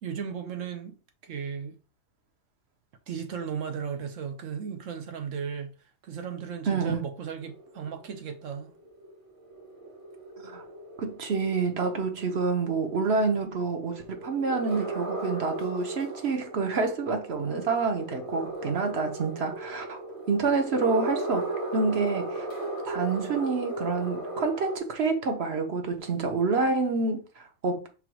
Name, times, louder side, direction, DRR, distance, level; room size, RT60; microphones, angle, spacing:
voice 1, 0.0-0.9 1.2-1.8 3.1-5.8 6.0-8.7, right 7 dB, 75° right, 1.4 m, -35 dB
voice 2, 6.7-7.0 10.4-10.6 11.0-20.0 20.3-22.5 22.8-27.9, right 4 dB, 55° right, 1.3 m, -28 dB
sound 1, 7.4-24.8, right 2 dB, 25° right, 1.5 m, -37 dB
5.7 x 3.6 x 4.6 m
omnidirectional pair, 1.4 m